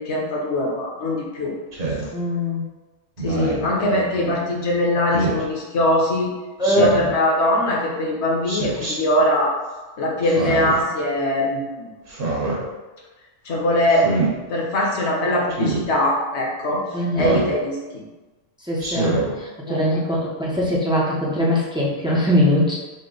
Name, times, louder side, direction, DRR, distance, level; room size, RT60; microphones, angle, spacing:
voice 1, 0.0-1.5 2.0-2.1 3.2-6.3 6.8-9.6 10.0-11.7 13.4-14.2 14.5-16.8 17.1-17.8 19.7-20.0, left 1 dB, 55° left, -2 dB, 1.1 m, -21 dB
Speech synthesizer, 1.7-2.1 3.2-3.7 5.1-5.4 6.6-7.1 8.4-8.9 10.2-10.8 12.1-12.6 13.9-14.3 15.5-15.8 17.1-17.5 18.8-19.3, right 3 dB, 45° right, 1.1 m, -25 dB
voice 2, 2.1-2.6 3.8-3.9 6.6-7.0 10.3-10.7 16.9-17.4 18.6-22.7, left 1 dB, 5° right, -5 dB, 0.4 m, -21 dB
5.5 x 2.1 x 3.8 m, 1.2 s
omnidirectional pair, 1.5 m